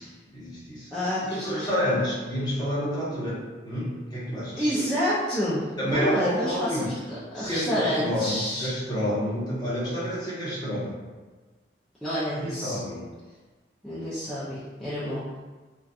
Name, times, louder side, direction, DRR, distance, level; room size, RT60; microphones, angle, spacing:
voice 1, 0.3-0.9 1.3-4.7 5.8-7.0 7.4-11.0 12.4-13.0, equal, 25° left, -9 dB, 0.9 m, -29 dB
voice 2, 0.9-1.7 4.6-8.7 12.0-12.8 13.8-15.4, equal, ahead, -13 dB, 0.5 m, -29 dB
2.6 x 2.3 x 2.4 m, 1.3 s
head